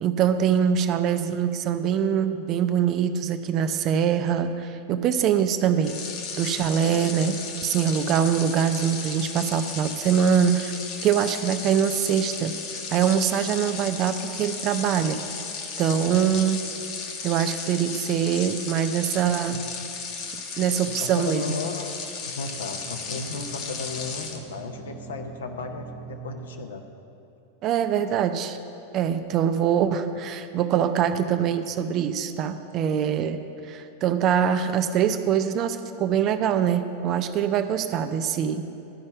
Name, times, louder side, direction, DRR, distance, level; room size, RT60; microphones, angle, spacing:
voice 1, 0.0-6.0 6.4-10.8 11.0-12.5 12.9-15.2 15.8-16.6 17.2-19.6 20.6-21.4 27.6-28.6 28.9-38.7, right 8 dB, 35° right, 9 dB, 0.5 m, -23 dB
sound 1, 5.8-24.4, left 5 dB, 40° left, 1.2 m, -35 dB
voice 2, 6.8-7.2 16.0-16.4 21.0-21.9 22.2-26.8, left 4 dB, 65° left, 4 dB, 0.8 m, -34 dB
sound 2, 22.2-26.6, right 7 dB, 5° right, 0.9 m, -44 dB
12.5 x 5.4 x 8.0 m, 2.8 s
figure-of-eight pair, 90°, 0 cm